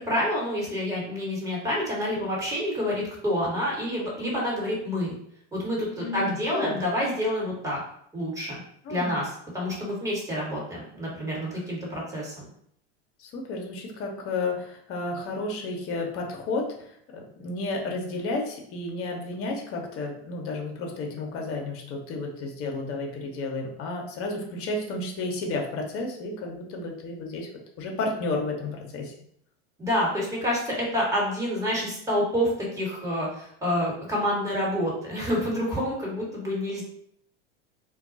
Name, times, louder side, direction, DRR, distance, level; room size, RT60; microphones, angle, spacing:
voice 1, 0.1-5.2 5.5-7.8 8.1-8.6 8.9-9.3 9.5-12.5 29.8-36.8, equal, 10° right, -4 dB, 1.5 m, -28 dB
voice 2, 6.0-6.8 8.8-9.2 13.2-27.5 27.8-29.1, left 2 dB, 40° left, 1 dB, 0.9 m, -32 dB
2.3 x 2.2 x 3.9 m, 0.68 s
hypercardioid pair, 95°, 34 cm